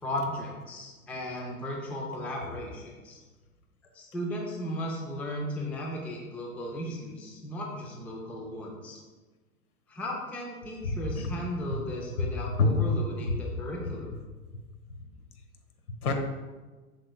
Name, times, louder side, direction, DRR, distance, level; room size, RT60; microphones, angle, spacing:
voice 1, 0.0-3.2 3.9-9.0 9.9-14.1, equal, 5° left, -1 dB, 0.4 m, -36 dB
voice 2, 10.8-11.3 12.2-12.7 15.9-16.1, left 3 dB, 75° left, 5 dB, 1.3 m, -27 dB
7.7 x 6.1 x 2.3 m, 1.3 s
hypercardioid pair, 120°, 45 cm